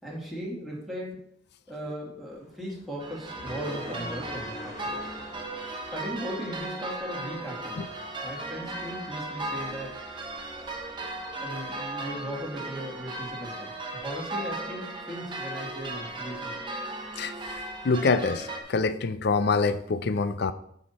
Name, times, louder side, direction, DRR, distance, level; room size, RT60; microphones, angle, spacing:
voice 1, 0.0-1.2 1.7-5.0 5.9-7.9 8.2-10.1 10.6-10.7 11.4-16.6, equal, ahead, -5 dB, 2.1 m, -37 dB
sound 1, 2.3-11.3, equal, 40° left, 1.4 m, -47 dB
sound 2, 3.0-18.6, right 2 dB, 25° right, 0.9 m, -36 dB
voice 2, 17.8-20.5, left 4 dB, 55° left, 13 dB, 0.5 m, -25 dB
8.6 x 5.7 x 4.2 m, 0.69 s
head